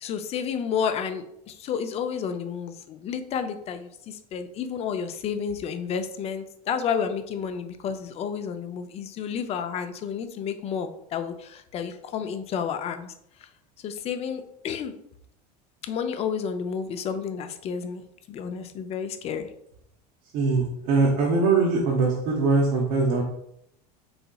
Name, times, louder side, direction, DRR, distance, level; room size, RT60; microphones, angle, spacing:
voice 1, 0.0-13.1 13.4-13.5 13.8-14.9 15.8-19.5, left 7 dB, 30° left, 9 dB, 0.4 m, -31 dB
voice 2, 20.3-23.2, right 3 dB, 65° right, -3 dB, 0.8 m, -22 dB
4.0 x 2.8 x 2.2 m, 0.75 s
supercardioid pair, 115°, 20 cm